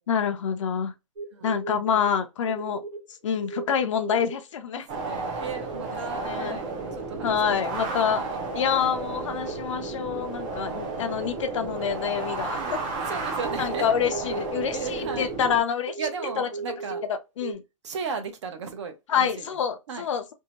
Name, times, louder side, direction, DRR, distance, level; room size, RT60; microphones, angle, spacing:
voice 1, 0.1-0.9 1.4-2.8 3.2-4.9 6.2-6.6 7.2-8.2 8.5-13.0 13.6-16.0 16.4-16.5 17.1-17.6 19.1-20.3, left 7 dB, 65° left, 0.5 m, -27 dB
sound 1, 1.2-2.1 2.5-3.0 3.4-4.4 6.1-6.2 8.5-8.6 11.5-11.6 11.8-12.5 12.7-12.9 13.4-14.7 15.0-17.0 17.4-17.5, right 4 dB, 85° right, 1.0 m, -35 dB
voice 2, 4.7-8.4 12.5-13.9 14.7-15.3 16.0-17.0 17.8-19.6 19.9-20.1, right 5 dB, 60° right, 0.7 m, -36 dB
sound 2, 4.9-15.6, right 3 dB, 15° right, 0.3 m, -33 dB
2.7 x 2.1 x 2.8 m
hypercardioid pair, 170°, 17 cm